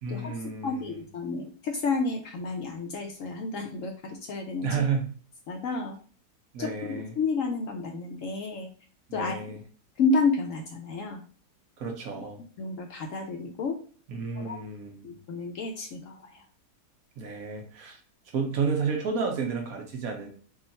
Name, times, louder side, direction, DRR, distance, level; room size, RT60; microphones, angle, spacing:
voice 1, 0.0-1.0 4.6-5.1 6.5-7.2 9.1-9.6 11.8-12.4 14.1-15.2 17.2-18.0 18.3-20.3, right 5 dB, 65° right, 2 dB, 1.2 m, -31 dB
voice 2, 0.6-4.7 5.5-6.0 6.6-8.7 9.1-9.5 10.0-11.2 12.6-13.8 14.4-14.6 15.0-16.4, left 4 dB, 65° left, 3 dB, 0.9 m, -30 dB
3.6 x 2.4 x 4.0 m, 0.43 s
omnidirectional pair, 1.7 m